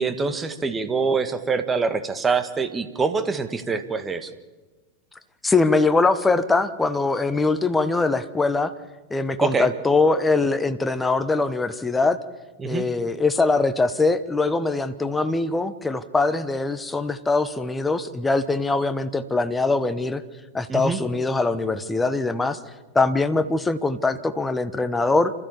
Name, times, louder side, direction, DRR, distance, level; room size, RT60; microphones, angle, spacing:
voice 1, 0.0-4.3 9.4-9.7 12.6-12.8 20.7-21.0, right 4 dB, 20° right, 10 dB, 1.7 m, -24 dB
voice 2, 5.4-8.7 9.1-12.2 12.6-20.2 20.5-22.6 22.9-25.3, left 3 dB, 10° left, 11 dB, 1.3 m, -22 dB
28.5 x 13.5 x 7.3 m, 1.2 s
figure-of-eight pair, 90°, 0 cm